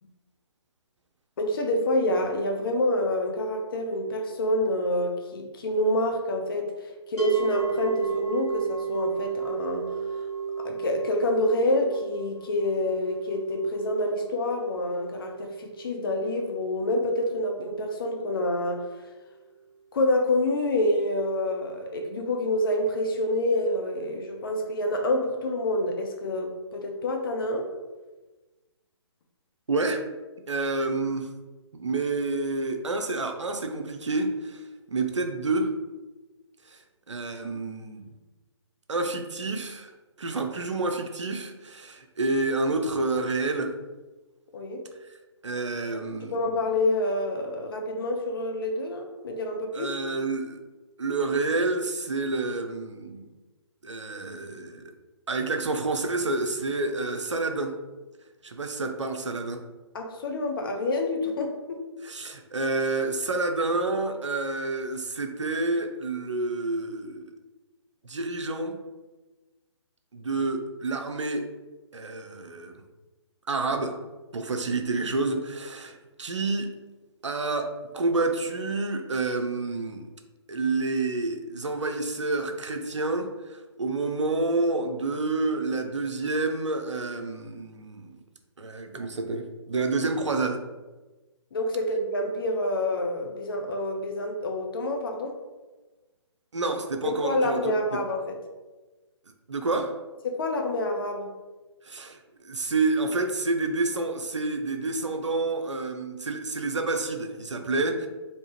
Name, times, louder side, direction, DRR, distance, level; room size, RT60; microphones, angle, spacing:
voice 1, 1.4-10.3 10.6-18.8 19.9-27.7 44.5-44.8 45.9-46.0 46.3-50.0 59.9-61.8 91.5-95.4 97.0-98.4 100.2-101.3, left 1 dB, 50° left, 3 dB, 0.6 m, -27 dB
sound 1, 7.2-18.3, right 5 dB, 70° left, 1.1 m, -34 dB
voice 2, 29.7-30.0 30.5-31.3 31.7-35.7 36.7-36.8 37.1-38.1 38.9-39.9 40.2-43.7 45.4-46.5 49.7-50.6 51.0-53.3 53.8-54.8 55.3-57.8 58.4-59.7 62.0-67.4 68.0-68.8 70.1-71.5 71.9-72.8 73.5-74.0 74.3-76.7 77.2-80.1 80.5-88.2 88.6-90.6 96.5-98.0 99.5-100.0 101.8-108.1, right 3 dB, 80° right, 5 dB, 0.5 m, -29 dB
3.4 x 2.7 x 2.9 m, 1.2 s
figure-of-eight pair, 135°, 15 cm